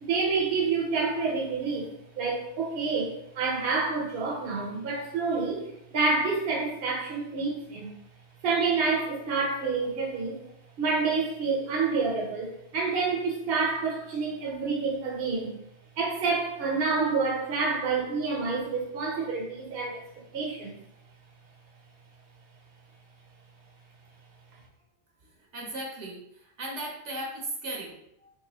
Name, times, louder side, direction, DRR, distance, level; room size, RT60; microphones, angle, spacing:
voice 1, 0.0-1.9 2.2-7.9 8.4-10.4 10.8-15.6 16.0-20.0 20.3-20.8, right 4 dB, 60° right, -2 dB, 0.9 m, -28 dB
voice 2, 25.5-28.3, right 1 dB, 75° right, -1 dB, 1.3 m, -37 dB
3.9 x 3.1 x 3.0 m, 0.78 s
omnidirectional pair, 1.2 m